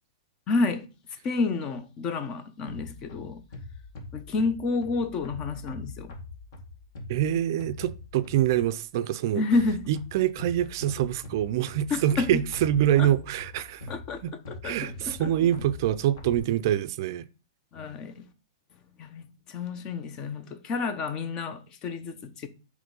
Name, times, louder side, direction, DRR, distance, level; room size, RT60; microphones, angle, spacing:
voice 1, 0.5-0.9 1.2-3.4 4.1-6.1 9.4-9.9 11.9-12.4 13.0-13.1 13.9-14.2 14.5-15.3 17.7-18.3 19.0-19.2 19.5-22.5, left 3 dB, 25° left, 0.8 m, -29 dB
sound 1, 2.7-8.7 9.5-16.4, left 3 dB, 50° left, 2.1 m, -43 dB
voice 2, 7.1-9.4 9.9-13.9 14.2-14.3 14.6-17.2, right 11 dB, 50° right, 0.5 m, -25 dB
7.5 x 3.2 x 5.4 m
hypercardioid pair, 155°, 3 cm